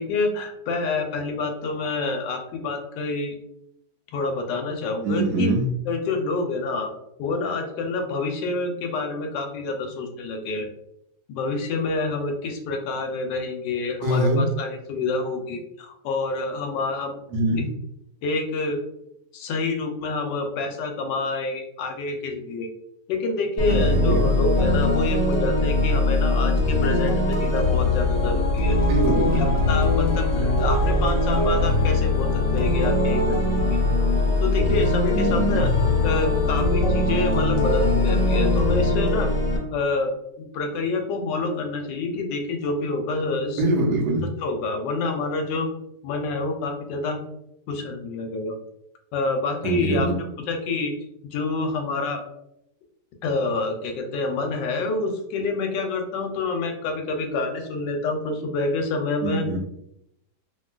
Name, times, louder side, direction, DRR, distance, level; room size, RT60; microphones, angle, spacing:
voice 1, 0.0-3.3 4.1-5.5 5.9-6.9 7.2-10.7 11.3-17.2 17.5-17.6 18.2-18.8 19.3-22.7 23.1-28.8 29.3-32.3 32.5-33.8 34.4-35.7 36.0-39.3 39.7-40.1 40.4-43.6 44.4-45.7 46.0-47.2 47.7-48.5 49.1-50.1 50.5-50.9 51.3-52.2 53.2-59.4, left 3 dB, 90° left, 4 dB, 1.2 m, -27 dB
voice 2, 5.0-5.7 14.0-14.4 17.3-17.7 23.7-24.3 28.9-29.4 35.1-35.7 43.6-44.3 49.6-50.1 59.2-59.6, right 1 dB, 70° right, -1 dB, 1.1 m, -23 dB
sound 1, 23.6-39.6, left 2 dB, 50° left, 0.9 m, -21 dB
2.9 x 2.6 x 2.3 m, 0.79 s
omnidirectional pair, 1.9 m